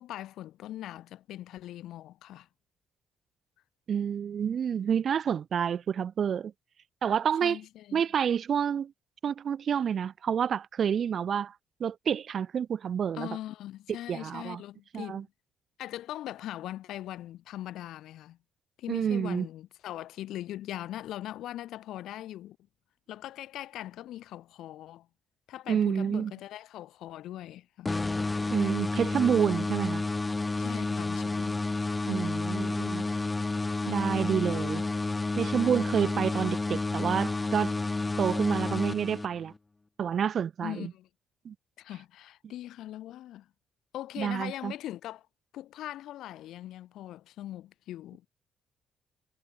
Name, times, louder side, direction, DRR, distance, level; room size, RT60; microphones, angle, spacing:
voice 1, 0.0-2.5 7.4-8.0 13.1-15.2 15.8-18.4 18.8-22.6 23.1-25.1 25.5-27.9 30.6-31.6 40.6-41.1 41.8-43.5 43.9-45.3 45.5-48.2, left 13 dB, 80° left, 1.8 m, -41 dB
voice 2, 3.9-6.5 7.0-7.6 7.9-8.9 9.2-11.5 11.8-13.3 14.1-14.6 14.9-15.2 18.9-19.5 25.7-26.3 28.5-30.1 32.1-33.1 33.9-34.8 35.4-37.7 38.2-39.5 40.0-40.9 41.4-41.5 44.2-44.7, right 8 dB, 55° right, 0.4 m, -28 dB
sound 1, 27.8-39.6, left 3 dB, 20° left, 0.3 m, -30 dB
cardioid pair, 90°, 0 cm